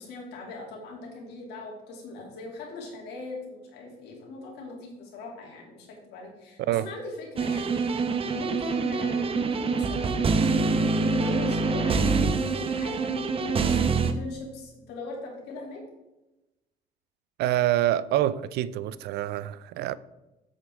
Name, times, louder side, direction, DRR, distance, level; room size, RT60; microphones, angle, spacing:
voice 1, 0.0-15.8, left 3 dB, 85° left, 2.8 m, -40 dB
sound 1, 7.4-14.1, right 4 dB, 35° right, 0.8 m, -25 dB
voice 2, 17.4-20.0, right 13 dB, 75° right, 0.4 m, -26 dB
7.9 x 7.7 x 3.6 m
cardioid pair, 110°, 17 cm